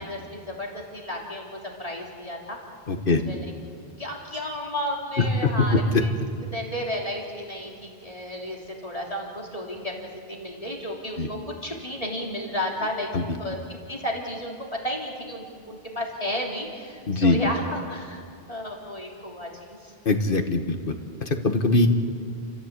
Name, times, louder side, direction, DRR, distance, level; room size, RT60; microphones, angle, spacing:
voice 1, 0.0-2.6 3.1-3.5 4.0-6.1 6.5-9.9 10.3-13.1 13.4-18.2 18.5-19.9, equal, 35° left, -2 dB, 3.2 m, -33 dB
voice 2, 2.9-3.2 5.4-6.0 11.2-11.3 13.1-13.2 17.1-17.4 20.0-20.9 21.2-21.9, left 2 dB, 60° left, 6 dB, 1.7 m, -22 dB
30.0 x 14.5 x 8.3 m, 2.1 s
omnidirectional pair, 1.0 m